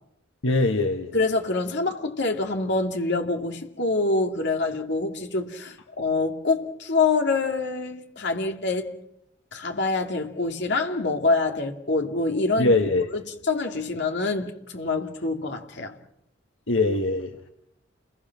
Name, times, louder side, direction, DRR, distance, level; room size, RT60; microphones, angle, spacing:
voice 1, 0.4-1.1 12.6-13.1 16.7-17.5, left 2 dB, 75° left, 1.5 m, -22 dB
voice 2, 1.1-8.9 9.5-12.7 13.1-13.2 13.5-16.0, left 3 dB, 60° left, 2.8 m, -26 dB
30.0 x 22.0 x 6.1 m
head